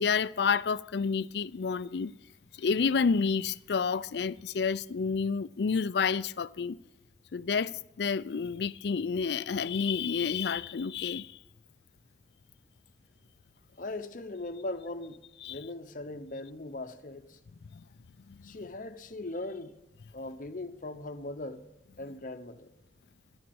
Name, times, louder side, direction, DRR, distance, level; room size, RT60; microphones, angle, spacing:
voice 1, 0.0-2.1 2.6-6.8 7.3-11.3 15.4-15.6 17.8-17.9 18.3-18.5, left 5 dB, 65° left, 0.4 m, -29 dB
voice 2, 13.8-15.2 15.5-17.4 18.4-19.7 20.1-21.6 22.0-22.7, left 2 dB, 50° left, 0.9 m, -39 dB
10.5 x 10.5 x 7.0 m
head